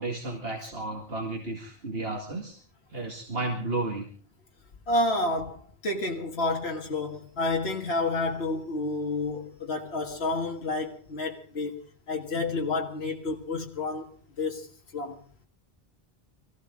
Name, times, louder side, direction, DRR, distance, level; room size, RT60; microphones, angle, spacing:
voice 1, 0.0-2.6 2.9-4.0, right 2 dB, 70° right, 2.4 m, -33 dB
voice 2, 4.9-11.7 12.1-14.1 14.4-14.7 14.9-15.2, left 2 dB, 80° left, 1.9 m, -29 dB
23.5 x 15.5 x 3.8 m
omnidirectional pair, 1.0 m